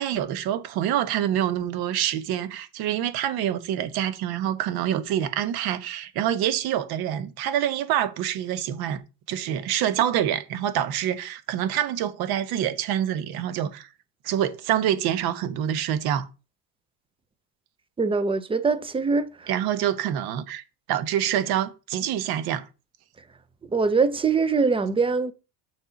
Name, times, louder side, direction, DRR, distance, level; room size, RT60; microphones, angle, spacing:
voice 1, 0.0-9.0 9.3-13.9 14.2-16.3 19.5-20.6 20.9-22.6, right 10 dB, 60° right, 1.2 m, -26 dB
voice 2, 18.0-19.5 23.7-25.3, right 4 dB, 15° right, 0.6 m, -23 dB
6.6 x 4.4 x 5.1 m
cardioid pair, 130°, 41 cm